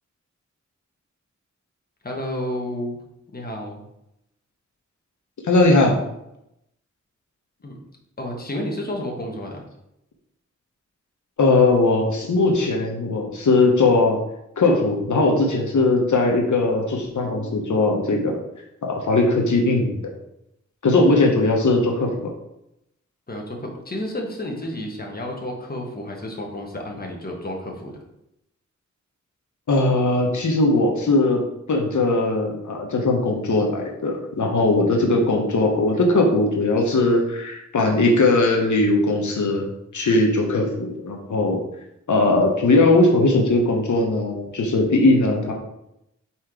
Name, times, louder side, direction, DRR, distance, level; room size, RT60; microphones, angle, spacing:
voice 1, 2.0-3.0 3.3-3.8 7.6-7.8 8.2-9.6 23.3-27.9, left 1 dB, 30° left, 0 dB, 1.2 m, -31 dB
voice 2, 5.4-6.0 11.4-14.2 14.6-18.4 18.8-20.0 20.8-22.3 29.7-31.4 31.7-39.7 39.9-41.6 42.1-45.5, left 2 dB, 80° left, 1 dB, 1.0 m, -19 dB
4.4 x 4.3 x 4.9 m, 0.83 s
wide cardioid pair, 100°, 29 cm